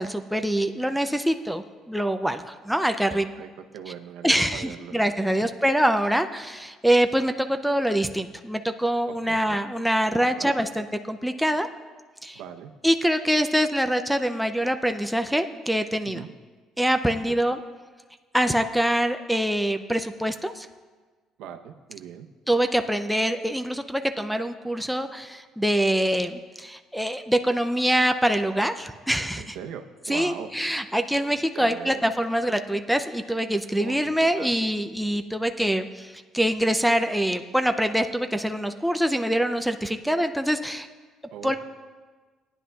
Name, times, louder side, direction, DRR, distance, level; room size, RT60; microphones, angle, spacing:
voice 1, 0.0-3.3 4.2-11.7 12.2-12.4 12.8-16.2 16.8-17.6 18.3-20.7 22.5-29.6 30.1-40.9 41.4-41.6, equal, ahead, 6 dB, 0.4 m, -24 dB
voice 2, 3.0-4.9 9.1-9.4 10.4-10.6 12.3-12.7 16.1-16.3 17.3-17.4 21.4-22.3 29.4-30.5 31.5-32.0 33.8-34.7 41.3-41.6, right 8 dB, 80° right, 5 dB, 0.7 m, -40 dB
18.5 x 10.0 x 2.3 m, 1.4 s
cardioid pair, 170°, 0 cm